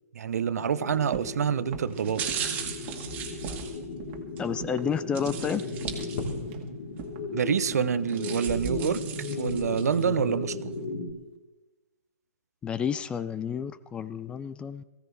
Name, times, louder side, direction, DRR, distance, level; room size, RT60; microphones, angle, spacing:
voice 1, 0.1-2.2 7.3-9.0 9.4-10.7, right 8 dB, 70° right, 16 dB, 0.7 m, -27 dB
sound 1, 0.6-11.1, left 3 dB, 50° left, 3.6 m, -35 dB
sound 2, 0.9-1.2 1.9-4.4 5.1-6.6 7.0-7.1 7.9-10.0 10.5-10.6, right 7 dB, 20° right, 2.2 m, -37 dB
sound 3, 1.1-1.4 1.7-3.7 4.0-4.2 4.6-4.9 5.3-5.5 5.8-6.7 7.0-8.3 9.3-10.2 10.5-10.9, right 9 dB, 35° right, 1.7 m, -43 dB
voice 2, 4.4-5.7 12.6-14.8, left 7 dB, 10° left, 15 dB, 0.4 m, -30 dB
19.5 x 16.0 x 3.3 m, 1.1 s
hypercardioid pair, 145°, 9 cm